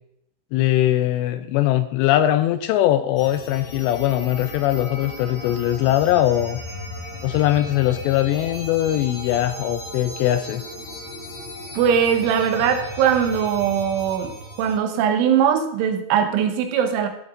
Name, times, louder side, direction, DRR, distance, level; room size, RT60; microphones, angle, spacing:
voice 1, 0.5-6.6 7.2-10.6, left 13 dB, 85° left, 11 dB, 2.5 m, -21 dB
sound 1, 3.2-14.8, left 1 dB, 50° left, 5.8 m, -36 dB
voice 2, 11.7-14.3 14.6-17.1, right 8 dB, 85° right, 7 dB, 3.6 m, -20 dB
14.0 x 8.0 x 3.7 m, 0.77 s
omnidirectional pair, 5.4 m